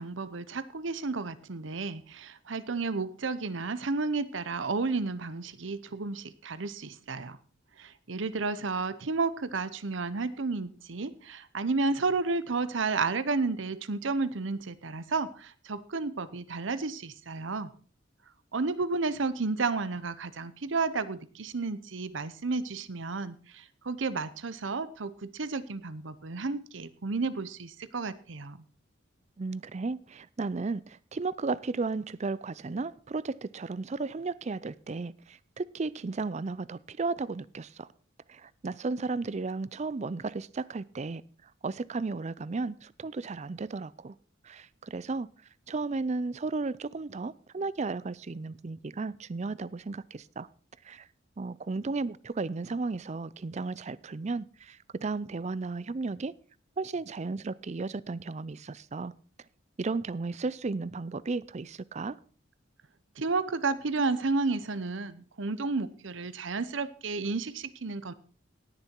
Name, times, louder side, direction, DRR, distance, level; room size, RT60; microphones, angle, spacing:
voice 1, 0.0-7.4 7.8-17.7 18.5-28.6 63.2-68.1, right 3 dB, 70° right, 0.8 m, -32 dB
voice 2, 29.4-37.9 38.3-44.2 44.4-45.3 45.7-50.5 50.8-51.1 51.4-56.3 56.8-59.1 59.8-62.2, right 3 dB, 35° right, 0.4 m, -34 dB
18.0 x 6.8 x 4.5 m
head